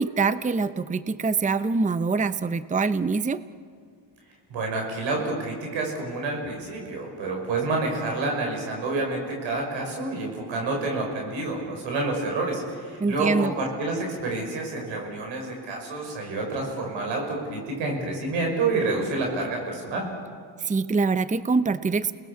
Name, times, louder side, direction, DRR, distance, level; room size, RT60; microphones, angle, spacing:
voice 1, 0.0-3.4 13.0-13.5 20.6-22.1, right 4 dB, 15° right, 14 dB, 0.7 m, -24 dB
voice 2, 4.5-20.1, right 3 dB, 90° right, 1 dB, 5.9 m, -28 dB
29.0 x 19.5 x 7.3 m, 2.1 s
supercardioid pair, 65°, 44 cm